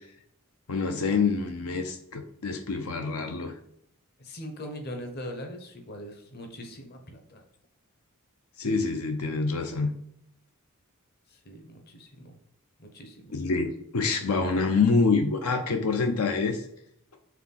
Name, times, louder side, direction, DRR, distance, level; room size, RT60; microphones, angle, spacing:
voice 1, 0.7-3.5 8.6-9.9 13.3-16.7, left 4 dB, 80° left, 5 dB, 0.6 m, -26 dB
voice 2, 4.2-7.4 11.3-12.4 12.8-13.3, equal, 45° left, 4 dB, 1.0 m, -41 dB
4.9 x 3.5 x 5.6 m, 0.73 s
head